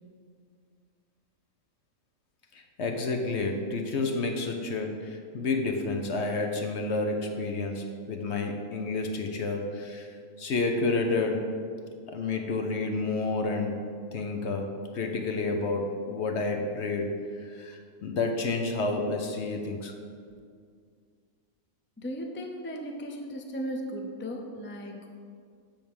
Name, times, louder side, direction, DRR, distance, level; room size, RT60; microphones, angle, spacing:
voice 1, 2.8-10.1 10.4-11.5 12.1-13.8 14.1-17.1 17.6-19.9, left 3 dB, 55° left, 4 dB, 1.0 m, -30 dB
voice 2, 22.0-25.1, equal, 15° left, 2 dB, 0.4 m, -36 dB
10.5 x 3.6 x 7.1 m, 2.1 s
omnidirectional pair, 1.5 m